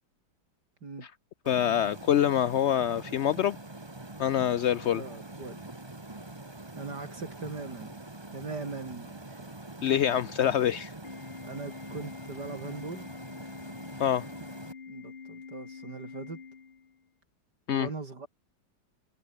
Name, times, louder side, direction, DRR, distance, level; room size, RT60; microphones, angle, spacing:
sound 1, 1.4-14.7, right 2 dB, 15° right, 1.8 m, -44 dB
voice 1, 1.5-3.6 4.2-5.0 9.8-10.9 14.0-14.3 17.7-17.9, left 10 dB, 70° left, 0.6 m, -25 dB
voice 2, 4.9-5.7 6.8-8.0 8.3-9.5 11.4-13.1 14.9-16.4 17.7-18.3, right 4 dB, 65° right, 4.2 m, -40 dB
Organ, 11.0-17.1, left 5 dB, 35° left, 1.1 m, -46 dB
omnidirectional pair, 1.9 m